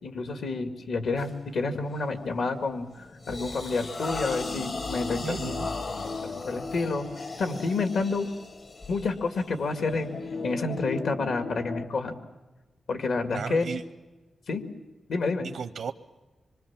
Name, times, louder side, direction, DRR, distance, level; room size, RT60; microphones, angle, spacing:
voice 1, 0.0-5.5 6.2-7.1 7.4-8.3 8.9-10.1 10.4-12.2 12.9-13.7 14.5-14.6 15.1-15.5, left 3 dB, 75° left, 7 dB, 2.1 m, -29 dB
sound 1, 1.2-1.4 1.9-2.2 2.6-10.7, left 3 dB, 40° left, 0.9 m, -39 dB
sound 2, 4.2-8.5 8.9-9.0 9.7-11.9, left 4 dB, 55° left, 1.2 m, -38 dB
voice 2, 5.2-5.7 13.3-13.8 15.5-15.9, right 6 dB, 75° right, 11 dB, 0.7 m, -34 dB
25.5 x 24.0 x 7.3 m, 1.2 s
wide cardioid pair, 160°, 0 cm